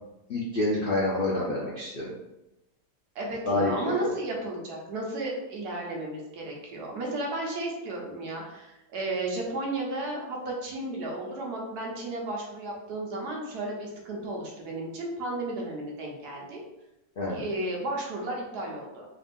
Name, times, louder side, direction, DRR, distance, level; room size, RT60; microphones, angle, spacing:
voice 1, 0.3-2.1 3.5-3.7 4.0-4.1 17.2-17.4, left 2 dB, 65° left, -4 dB, 0.5 m, -27 dB
voice 2, 3.1-16.6 17.3-19.0, right 2 dB, 70° right, -1 dB, 1.3 m, -33 dB
3.9 x 2.5 x 3.5 m, 0.96 s
omnidirectional pair, 1.8 m